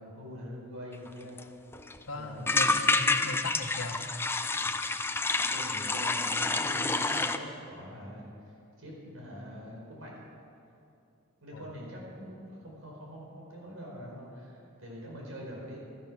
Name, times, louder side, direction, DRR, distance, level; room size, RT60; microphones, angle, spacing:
voice 1, 0.0-1.4 2.1-2.5 5.3-10.1 11.4-15.8, equal, 85° right, -2 dB, 4.7 m, -44 dB
sound 1, 1.1-1.2 1.4-1.5 1.7-2.0 2.5-7.4, left 3 dB, 10° left, 0.4 m, -28 dB
voice 2, 2.1-4.0 11.5-11.7, left 2 dB, 80° left, 5 dB, 1.3 m, -38 dB
16.0 x 12.0 x 6.2 m, 2.6 s
head